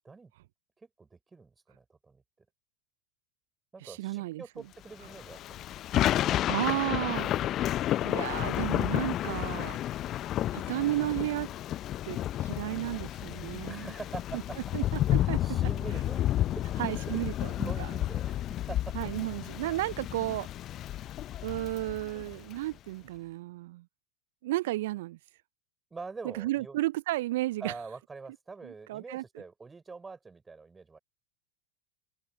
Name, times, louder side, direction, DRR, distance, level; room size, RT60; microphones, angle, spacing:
voice 1, 0.8-2.2 3.7-5.7 6.0-6.4 13.7-14.6 15.2-16.2 16.5-17.2 17.5-19.1 25.9-26.8 27.6-31.0, right 4 dB, 15° right, 5.7 m, -45 dB
voice 2, 3.8-4.4 6.5-7.3 8.0-9.8 10.5-11.5 12.0-13.9 14.7-14.8 15.1-15.4 16.8-17.9 18.9-20.5 21.4-23.9 24.4-25.2 26.2-27.7 28.6-29.2, right 17 dB, 65° right, 0.4 m, -33 dB
Thunder / Rain, 5.0-22.6, left 13 dB, 40° left, 0.6 m, -31 dB
figure-of-eight pair, 80°, 0 cm